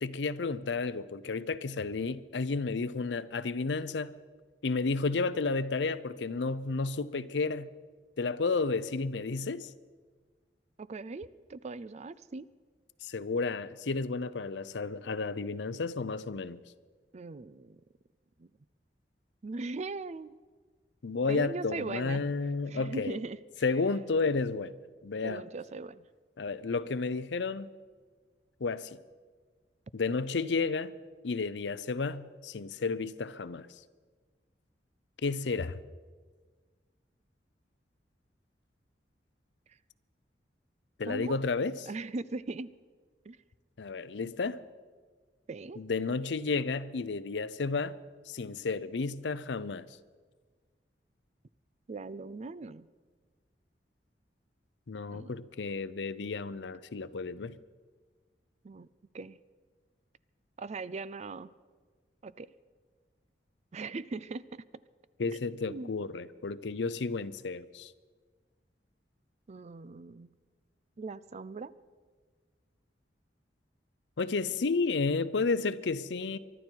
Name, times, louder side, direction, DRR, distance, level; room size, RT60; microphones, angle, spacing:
voice 1, 0.0-4.1 4.6-7.7 8.2-9.7 13.0-16.6 21.0-23.2 23.6-24.7 25.0-25.4 26.4-27.7 28.6-28.9 29.9-30.9 31.2-33.7 35.2-35.8 41.0-41.9 43.8-44.6 45.8-48.0 48.3-49.8 54.9-57.6 65.2-67.9 74.2-76.4, left 4 dB, 75° left, 0.6 m, -32 dB
voice 2, 10.8-12.5 17.1-17.8 18.4-18.5 19.4-20.4 21.3-22.3 22.7-23.4 25.2-26.0 41.1-41.4 41.9-42.7 43.3-43.4 45.5-45.8 51.9-52.9 55.1-55.3 58.6-58.9 59.1-59.4 60.6-61.5 62.2-62.5 63.7-64.6 65.7-65.9 69.5-70.3 71.0-71.7, right 3 dB, 40° right, 0.4 m, -39 dB
24.0 x 12.0 x 4.6 m
head